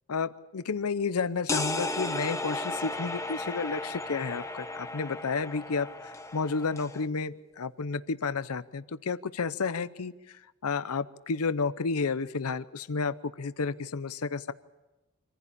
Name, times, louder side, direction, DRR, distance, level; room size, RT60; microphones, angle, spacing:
voice 1, 0.1-10.4 10.6-14.5, left 4 dB, 85° left, 14 dB, 0.7 m, -31 dB
sound 1, 1.5-7.1, left 2 dB, 15° left, 0.8 m, -35 dB
25.5 x 15.0 x 8.6 m, 1.1 s
head